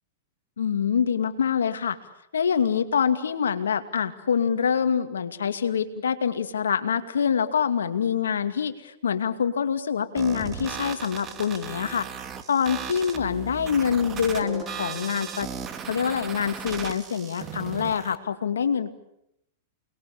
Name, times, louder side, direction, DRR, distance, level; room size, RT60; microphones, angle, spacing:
voice 1, 0.6-2.0 2.3-12.1 12.5-15.5 15.9-18.9, left 7 dB, 85° left, 10 dB, 2.4 m, -25 dB
sound 1, 10.2-18.2, right 7 dB, 30° right, 3.0 m, -36 dB
29.5 x 21.0 x 8.5 m, 0.79 s
hypercardioid pair, 115°, 0 cm